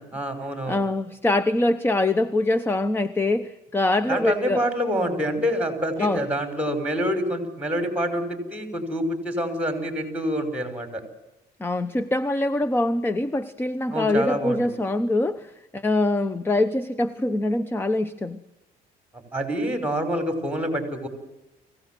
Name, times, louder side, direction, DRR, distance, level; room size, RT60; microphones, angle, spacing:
voice 1, 0.0-0.8 4.1-11.0 13.9-14.6 19.3-21.1, equal, 10° right, 7 dB, 5.6 m, -27 dB
voice 2, 0.7-4.7 6.0-6.2 11.6-18.4, left 2 dB, 15° left, 14 dB, 0.9 m, -24 dB
24.5 x 17.0 x 7.7 m, 0.96 s
cardioid pair, 110°, 17 cm